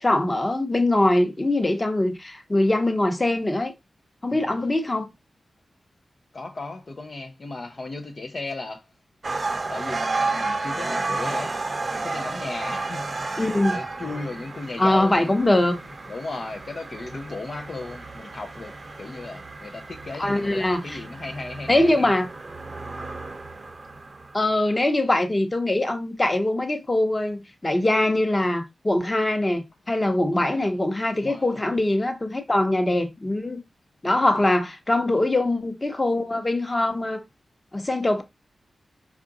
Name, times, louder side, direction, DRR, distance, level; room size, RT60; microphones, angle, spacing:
voice 1, 0.0-3.7 4.2-5.1 13.4-13.8 14.8-15.7 20.2-21.0 21.7-22.3 24.3-33.6 34.0-37.2 37.7-38.2, left 1 dB, 25° left, 0.9 m, -22 dB
voice 2, 4.3-4.8 6.3-8.9 9.7-22.1 30.3-30.7 31.1-31.9 34.0-34.5, left 3 dB, 50° left, 0.5 m, -36 dB
sound 1, 9.2-24.5, right 3 dB, 40° right, 0.6 m, -32 dB
4.6 x 2.4 x 3.8 m
cardioid pair, 70°, 0 cm